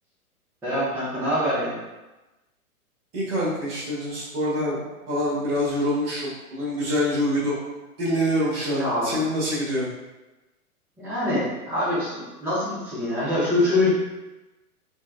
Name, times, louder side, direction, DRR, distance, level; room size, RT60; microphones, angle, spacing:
voice 1, 0.6-1.8 8.7-9.2 11.0-13.9, left 1 dB, 5° right, -10 dB, 0.7 m, -24 dB
voice 2, 3.1-4.8 5.1-7.5 8.0-9.9, equal, 30° right, -7 dB, 1.2 m, -25 dB
4.4 x 2.2 x 2.2 m, 1.1 s
figure-of-eight pair, 110°, 45 cm